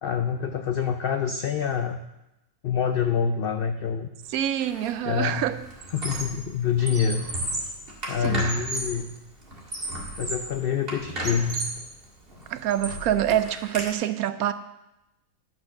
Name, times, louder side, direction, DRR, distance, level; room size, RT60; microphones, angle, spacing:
voice 1, 0.0-2.0 2.6-4.1 5.0-5.4 5.9-7.3 8.1-9.1 10.2-11.6, left 7 dB, 75° left, 7 dB, 0.5 m, -26 dB
voice 2, 4.3-5.6 8.2-8.5 12.5-14.5, right 11 dB, 75° right, 12 dB, 1.0 m, -26 dB
Squeak, 4.6-4.9 5.2-6.4 6.8-9.0 9.5-10.5 10.9-11.8 12.3-13.9, right 1 dB, 40° right, 2.2 m, -33 dB
10.5 x 6.0 x 6.5 m, 0.93 s
omnidirectional pair, 1.6 m